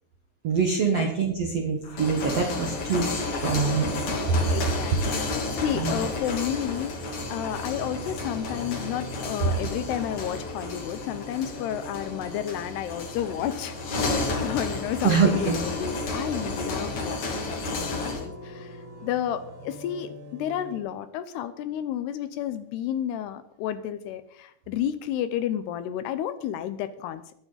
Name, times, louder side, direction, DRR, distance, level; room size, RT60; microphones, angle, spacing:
voice 1, 0.4-3.9 4.4-4.5 5.7-6.0 15.0-15.6, right 5 dB, 65° right, 1 dB, 1.6 m, -24 dB
sound 1, 1.8-18.3, left 3 dB, 45° left, 3.3 m, -32 dB
sound 2, 2.3-20.8, right 1 dB, 45° right, 3.0 m, -42 dB
voice 2, 4.5-27.3, left 10 dB, 80° left, 12 dB, 2.6 m, -32 dB
22.5 x 9.5 x 4.0 m, 0.70 s
omnidirectional pair, 5.1 m